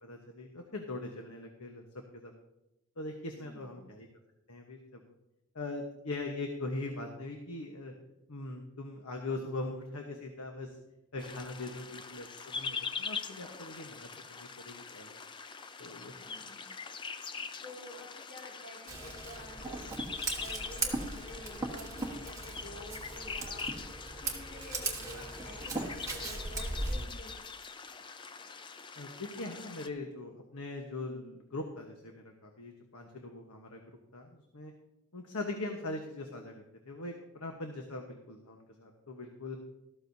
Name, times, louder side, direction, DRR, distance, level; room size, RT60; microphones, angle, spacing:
voice 1, 0.0-1.8 2.1-2.3 3.0-4.1 4.5-5.0 5.5-7.9 8.3-10.8 11.1-15.2 15.8-16.4 29.0-33.8 34.1-34.7 35.1-39.6, left 2 dB, 85° left, 3 dB, 1.2 m, -41 dB
voice 2, 3.3-3.9 16.2-16.7 17.6-20.0 20.3-23.7 24.2-27.3, left 1 dB, 45° left, -4 dB, 2.4 m, -50 dB
sound 1, 11.2-29.9, left 5 dB, 20° left, 0.4 m, -43 dB
Scissors, 18.9-27.1, right 3 dB, 15° right, 1.3 m, -38 dB
13.5 x 13.0 x 2.7 m, 0.89 s
head